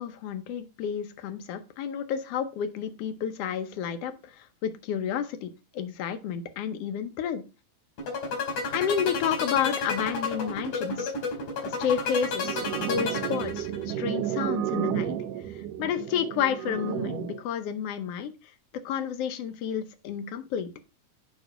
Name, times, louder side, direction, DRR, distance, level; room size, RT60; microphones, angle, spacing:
voice 1, 0.0-7.4 8.7-11.1 11.6-15.2 15.4-18.3 18.8-20.7, left 8 dB, 70° left, 9 dB, 1.5 m, -31 dB
sound 1, 8.0-13.9, left 4 dB, 90° left, 3.8 m, -31 dB
sound 2, 12.4-17.4, right 11 dB, 75° right, 1.5 m, -32 dB
9.4 x 3.2 x 4.9 m, 0.30 s
omnidirectional pair, 3.4 m